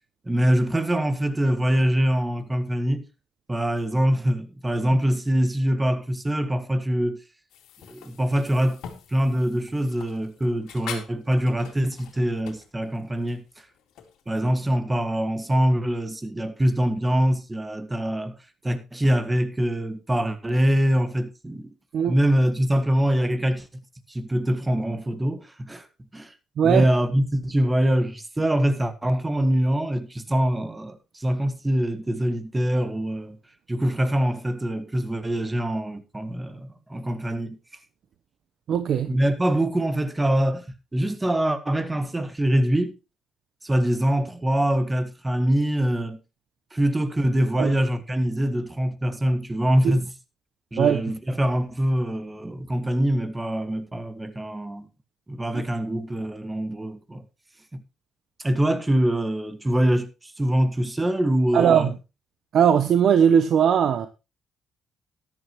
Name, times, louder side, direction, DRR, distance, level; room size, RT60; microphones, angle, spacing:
voice 1, 0.3-3.1 3.5-7.2 7.9-8.8 9.1-13.4 14.3-18.4 18.6-21.7 22.1-23.7 24.1-25.9 26.1-26.3 26.6-33.4 33.7-37.6 39.1-40.7 40.9-43.0 43.6-46.2 46.7-50.1 50.7-54.9 55.3-57.2 57.7-57.8 58.4-61.9, equal, 15° right, 1.7 m, -24 dB
sound 1, 7.5-14.3, left 8 dB, 85° left, 2.4 m, -44 dB
voice 2, 26.6-26.9 38.7-39.2 47.6-47.8 50.8-51.0 61.5-61.9 62.5-64.1, right 8 dB, 65° right, 0.9 m, -19 dB
13.0 x 11.0 x 3.1 m
cardioid pair, 85°, 0 cm